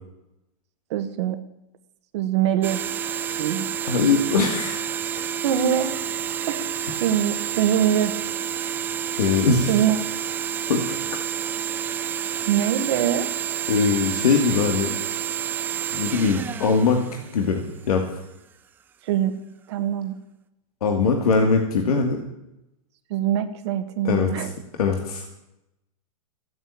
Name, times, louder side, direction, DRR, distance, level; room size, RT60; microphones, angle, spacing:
voice 1, 0.9-1.4 2.1-2.8 3.4-3.7 5.4-6.0 6.5-6.7 7.0-8.1 9.7-10.0 12.5-13.3 19.0-19.4 19.7-20.1 23.1-24.5, right 10 dB, 50° right, 6 dB, 1.3 m, -23 dB
sound 1, 2.6-17.8, right 8 dB, 10° right, 0.5 m, -29 dB
voice 2, 3.8-4.8 9.2-9.7 10.7-11.0 13.7-15.0 15.9-18.0 20.8-22.2 24.0-24.5 24.8-25.4, left 5 dB, 85° left, 3 dB, 2.4 m, -21 dB
15.0 x 9.2 x 8.6 m, 0.90 s
supercardioid pair, 165°, 19 cm